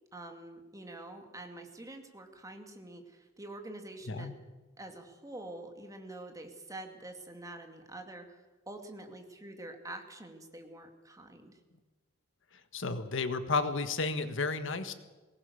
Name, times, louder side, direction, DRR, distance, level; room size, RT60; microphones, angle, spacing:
voice 1, 0.1-4.3 4.8-11.6, right 2 dB, 15° right, 4 dB, 2.4 m, -46 dB
voice 2, 12.7-14.9, left 4 dB, 65° left, 10 dB, 1.5 m, -32 dB
22.5 x 19.0 x 7.0 m, 1.2 s
head